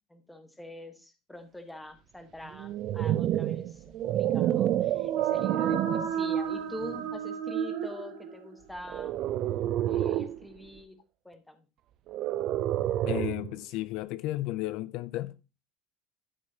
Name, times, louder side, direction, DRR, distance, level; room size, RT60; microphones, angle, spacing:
voice 1, 0.1-9.2 9.8-11.0 11.2-11.6, left 1 dB, 5° left, 1.3 m, -45 dB
sound 1, 2.5-6.2 6.8-7.1 8.9-10.4 12.1-13.5, right 12 dB, 45° right, 0.4 m, -29 dB
sound 2, 4.8-8.7, right 7 dB, 90° right, 1.8 m, -32 dB
voice 2, 13.1-15.3, left 16 dB, 55° left, 0.4 m, -33 dB
12.0 x 6.3 x 2.9 m
cardioid pair, 155°, 0 cm